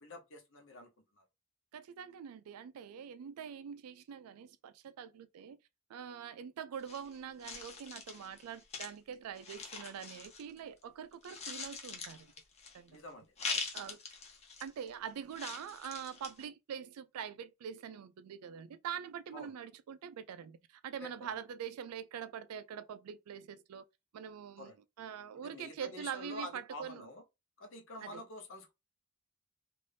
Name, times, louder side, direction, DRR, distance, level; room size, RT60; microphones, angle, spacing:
voice 1, 0.0-0.9 1.1-1.2 12.9-13.6 19.3-19.5 21.0-21.3 24.6-24.7 25.4-27.2 27.6-28.7, left 1 dB, 60° left, 0.8 m, -47 dB
voice 2, 1.7-5.6 5.9-12.3 12.7-13.0 13.7-14.0 14.6-23.8 24.1-24.7 25.0-27.1 28.0-28.2, right 8 dB, 85° right, 0.3 m, -44 dB
sound 1, 6.8-10.8 11.1-12.9 13.4-14.9 15.3-16.4, left 4 dB, 30° left, 0.6 m, -43 dB
2.6 x 2.5 x 3.3 m
head